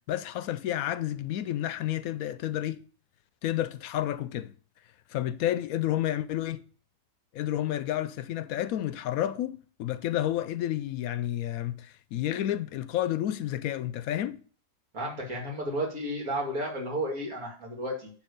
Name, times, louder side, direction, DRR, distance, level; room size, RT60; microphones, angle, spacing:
voice 1, 0.1-2.8 3.4-4.5 5.1-6.6 7.3-14.4, left 12 dB, 75° left, 1.0 m, -30 dB
voice 2, 14.9-18.1, right 1 dB, 75° right, 2.6 m, -32 dB
9.7 x 3.3 x 6.6 m
omnidirectional pair, 1.5 m